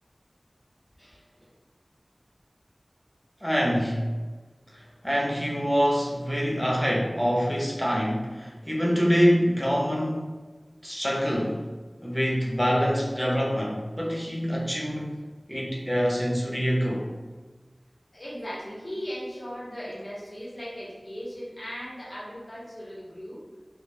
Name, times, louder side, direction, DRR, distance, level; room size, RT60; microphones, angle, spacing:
voice 1, 3.4-4.1 4.7-10.3 10.8-11.6 12.0-15.1 15.5-17.1, equal, 5° left, -3 dB, 0.6 m, -25 dB
voice 2, 18.1-23.4, equal, 60° left, -7 dB, 0.9 m, -37 dB
2.2 x 2.2 x 3.3 m, 1.3 s
wide cardioid pair, 45°, 0 cm